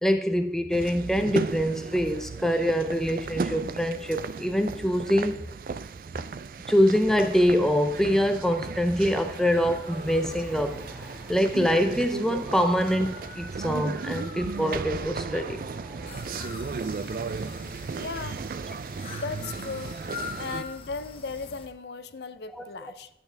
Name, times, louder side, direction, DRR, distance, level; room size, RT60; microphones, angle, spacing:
voice 1, 0.0-5.4 6.7-10.8 11.3-15.6 22.6-22.7, equal, 5° left, 7 dB, 0.5 m, -24 dB
sound 1, 0.7-20.6, right 4 dB, 50° right, 0.3 m, -35 dB
sound 2, 7.2-16.2, equal, 85° right, 4.3 m, -44 dB
sound 3, 16.0-21.7, left 4 dB, 30° left, 1.0 m, -42 dB
voice 2, 17.6-18.5 19.1-19.9 20.4-23.1, left 4 dB, 75° left, 12 dB, 0.5 m, -37 dB
11.5 x 7.9 x 3.4 m, 0.79 s
head